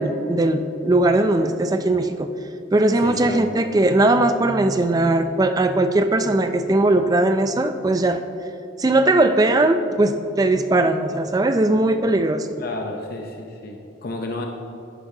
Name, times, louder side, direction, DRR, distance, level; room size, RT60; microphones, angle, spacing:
voice 1, 0.0-2.3 2.7-8.2 8.8-12.5, right 2 dB, 20° right, 8 dB, 0.3 m, -19 dB
voice 2, 3.0-3.4 12.6-14.5, left 2 dB, 50° left, 2 dB, 0.6 m, -31 dB
10.5 x 10.0 x 2.7 m, 2.8 s
head